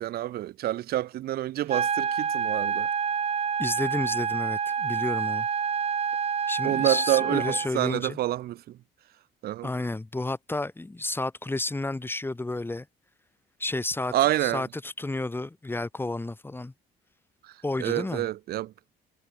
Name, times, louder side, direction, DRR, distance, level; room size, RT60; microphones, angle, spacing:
voice 1, 0.0-2.9 6.6-8.8 9.4-9.7 14.1-14.6 17.8-18.7, right 14 dB, 65° right, 1.3 m, -28 dB
sound 1, 1.7-7.7, right 7 dB, 40° right, 3.6 m, -28 dB
voice 2, 3.6-5.5 6.5-8.2 9.6-12.9 13.6-14.1 14.4-16.7 17.6-18.3, left 2 dB, 15° left, 5.8 m, -31 dB
cardioid pair, 110°, 17 cm